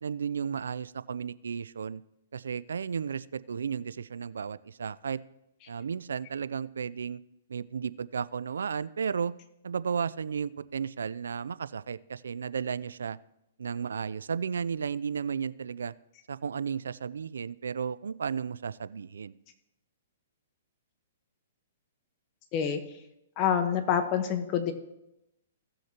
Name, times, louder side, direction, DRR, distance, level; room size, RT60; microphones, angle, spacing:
voice 1, 0.0-2.0 2.3-5.2 5.7-7.2 7.5-9.3 9.6-13.2 13.6-15.9 16.3-19.3, right 6 dB, 85° right, 17 dB, 0.4 m, -34 dB
voice 2, 22.5-23.0 23.4-24.7, left 8 dB, 35° left, 7 dB, 1.2 m, -27 dB
16.5 x 6.3 x 2.9 m, 0.85 s
hypercardioid pair, 135°, 0 cm